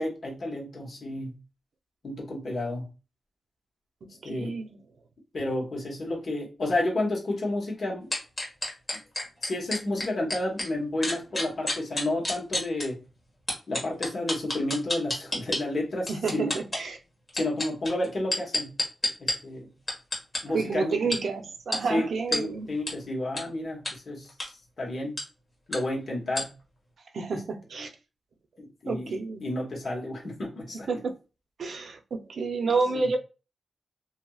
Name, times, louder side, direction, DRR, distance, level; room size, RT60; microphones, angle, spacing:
voice 1, 0.0-1.4 2.0-2.9 4.2-4.6 5.3-8.1 9.4-13.0 13.7-16.5 17.3-18.8 19.2-19.7 20.4-21.2 21.9-22.0 22.3-24.3 24.8-25.2 25.7-26.5 27.3-27.4 28.6-29.1 29.4-30.9 32.9-33.1, left 1 dB, 50° left, 1.1 m, -31 dB
voice 2, 4.2-4.8 16.1-17.0 20.4-22.7 27.1-27.9 28.9-29.5 30.9-31.2 31.6-33.2, right 4 dB, 65° right, 0.5 m, -29 dB
sound 1, 8.1-10.7 11.0-12.8 13.5-15.6 16.1-16.8 17.3-19.3 19.9-20.4 21.1-21.2 21.7-21.8 22.3-22.4 22.9-23.0 23.4-23.5 23.8-23.9 24.3-24.5 25.2-25.3 25.7-25.8 26.3-26.4, left 1 dB, 25° left, 1.3 m, -28 dB
2.7 x 2.7 x 2.3 m
wide cardioid pair, 110°, 0 cm